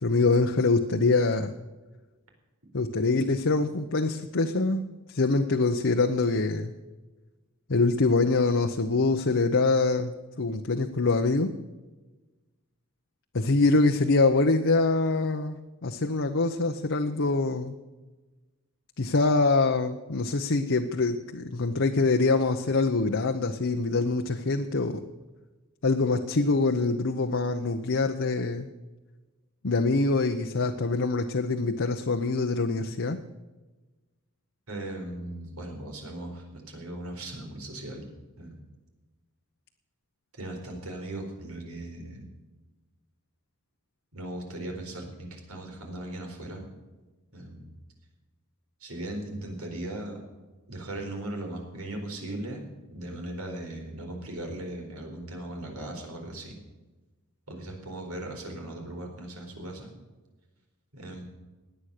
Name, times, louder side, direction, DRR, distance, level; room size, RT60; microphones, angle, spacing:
voice 1, 0.0-1.5 2.7-4.8 5.1-6.7 7.7-11.5 13.3-17.7 19.0-25.0 25.8-28.7 29.6-33.2, left 3 dB, 60° left, 4 dB, 0.9 m, -24 dB
voice 2, 34.7-38.1 38.4-38.6 40.3-42.3 44.1-46.7 47.3-47.7 48.8-50.2 50.7-52.7 52.9-56.6 57.5-59.9 60.9-61.2, right 1 dB, 80° right, 2 dB, 4.4 m, -38 dB
17.5 x 10.0 x 6.6 m, 1.2 s
head